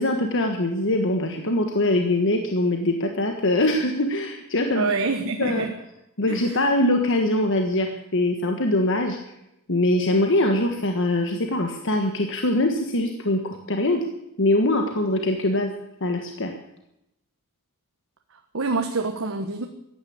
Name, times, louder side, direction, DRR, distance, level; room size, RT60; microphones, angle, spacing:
voice 1, 0.0-4.8 5.4-5.7 6.2-9.2 9.7-14.0 14.4-15.7 16.0-16.5, left 1 dB, 55° left, 4 dB, 1.6 m, -23 dB
voice 2, 4.7-5.7 6.3-6.7 18.5-19.7, right 3 dB, 65° right, 5 dB, 1.3 m, -26 dB
15.5 x 10.5 x 8.7 m, 0.84 s
head